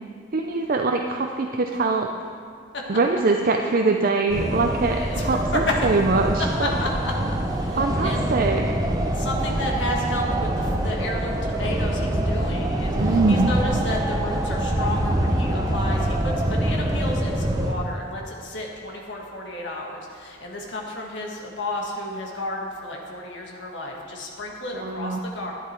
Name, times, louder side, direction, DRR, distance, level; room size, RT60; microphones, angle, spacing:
voice 1, 0.3-2.1 2.9-6.7 7.7-8.7 13.0-13.5 24.8-25.2, right 3 dB, 45° right, 3 dB, 0.5 m, -23 dB
sound 1, 4.3-17.7, right 1 dB, 20° right, 0.8 m, -25 dB
voice 2, 5.0-5.4 5.7-5.8 6.6-7.1 7.4-8.2 9.1-25.5, left 1 dB, 60° left, -1 dB, 1.6 m, -32 dB
11.5 x 10.0 x 4.5 m, 2.3 s
head